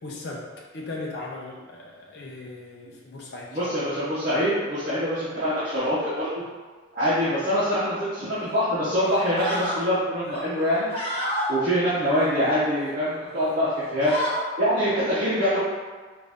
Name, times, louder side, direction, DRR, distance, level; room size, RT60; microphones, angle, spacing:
voice 1, 0.0-0.5 0.7-3.7, left 2 dB, 55° left, -3 dB, 0.5 m, -37 dB
voice 2, 3.5-6.4 6.9-10.9 11.5-14.1 14.6-15.6, equal, 45° right, -12 dB, 0.9 m, -24 dB
sound 1, 8.4-8.6 9.1-9.8 10.2-11.5 12.0-12.9 13.3-13.5 13.8-14.4, left 1 dB, 30° left, 0.9 m, -31 dB
3.9 x 2.6 x 3.5 m, 1.5 s
head